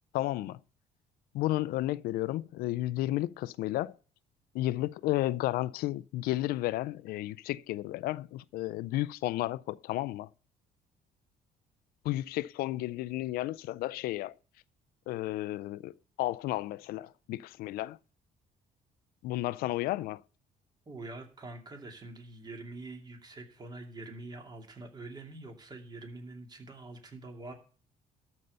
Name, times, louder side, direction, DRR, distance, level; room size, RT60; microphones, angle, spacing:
voice 1, 0.1-0.6 1.3-4.0 4.5-10.3 12.0-14.4 15.1-18.0 19.2-20.2, left 16 dB, 80° left, 0.4 m, -32 dB
voice 2, 20.9-27.5, right 2 dB, 25° right, 2.6 m, -45 dB
13.0 x 5.4 x 6.7 m
cardioid pair, 130°, 15 cm